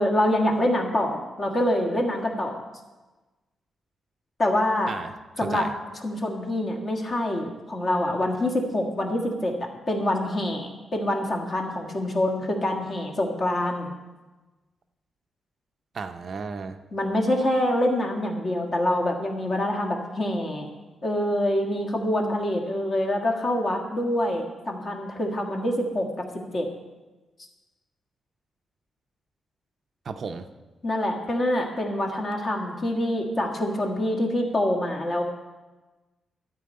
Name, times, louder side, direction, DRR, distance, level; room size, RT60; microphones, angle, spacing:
voice 1, 0.0-2.6 4.4-5.0 5.4-5.7 6.0-13.9 16.9-20.7 21.0-26.1 26.5-26.7 30.8-35.2, left 1 dB, 35° left, 1 dB, 1.7 m, -25 dB
voice 2, 4.9-5.7 15.9-16.8 30.1-30.4, right 5 dB, 45° right, 7 dB, 0.5 m, -34 dB
13.0 x 4.5 x 8.6 m, 1.2 s
wide cardioid pair, 155°, 0 cm